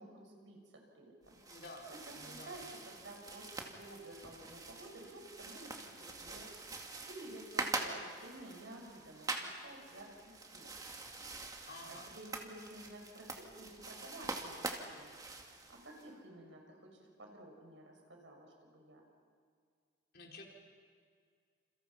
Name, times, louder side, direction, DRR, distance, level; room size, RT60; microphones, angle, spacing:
voice 1, 0.0-1.4 1.9-2.0 2.2-6.5 7.1-10.7 11.9-15.2 15.7-19.0, right 1 dB, 80° right, 1 dB, 6.5 m, -52 dB
sound 1, 1.2-16.1, right 3 dB, 20° right, 2.2 m, -45 dB
voice 2, 1.5-2.7 11.7-12.1 20.1-20.4, left 2 dB, 55° left, 0 dB, 4.6 m, -51 dB
29.0 x 29.0 x 5.8 m, 2.1 s
head